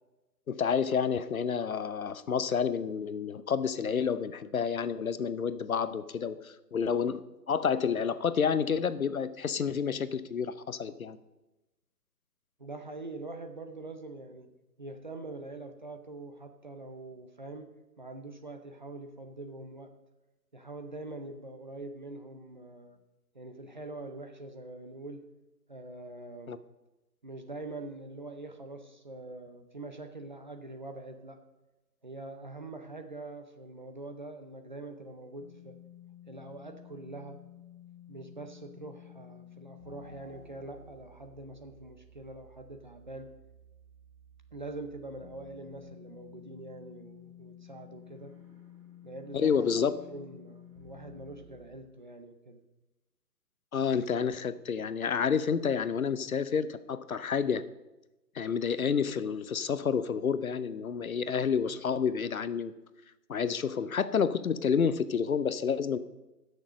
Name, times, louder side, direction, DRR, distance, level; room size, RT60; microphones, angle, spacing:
voice 1, 0.5-11.2 26.5-26.6 49.3-49.9 53.7-57.6 58.3-62.7 63.3-66.0, left 6 dB, 55° left, 14 dB, 0.7 m, -29 dB
voice 2, 12.6-14.5 14.8-19.9 20.5-23.0 23.3-25.2 25.7-26.5 27.2-31.4 32.0-35.8 36.3-37.4 38.1-43.3 44.5-48.3 49.0-52.6, right 2 dB, 30° right, 6 dB, 0.6 m, -44 dB
sound 1, 35.4-51.7, left 6 dB, 10° right, 2.7 m, -53 dB
15.5 x 6.6 x 5.1 m, 1.0 s
figure-of-eight pair, 150°, 49 cm